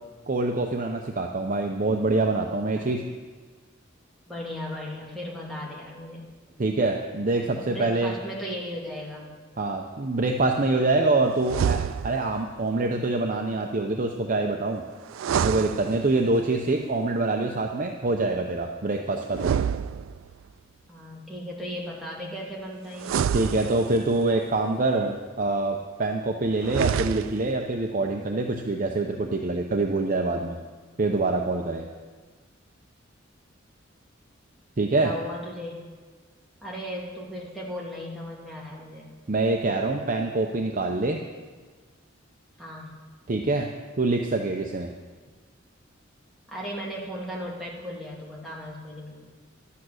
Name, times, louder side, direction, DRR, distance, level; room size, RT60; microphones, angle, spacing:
voice 1, 0.3-3.0 6.6-8.1 9.6-14.8 15.3-19.5 23.3-30.6 31.0-31.9 34.8-35.1 39.3-41.2 43.3-43.7 44.0-44.9, right 2 dB, 40° right, 2 dB, 0.7 m, -25 dB
voice 2, 4.3-6.3 7.5-9.3 20.9-23.3 35.0-35.8 36.6-39.1 42.6-43.0 46.5-49.2, equal, ahead, -5 dB, 2.4 m, -36 dB
sound 1, 11.4-12.4 15.1-16.4 19.3-20.5 23.0-24.2 26.6-27.6, right 8 dB, 80° right, 0.3 m, -28 dB
12.0 x 8.4 x 6.4 m, 1.4 s
head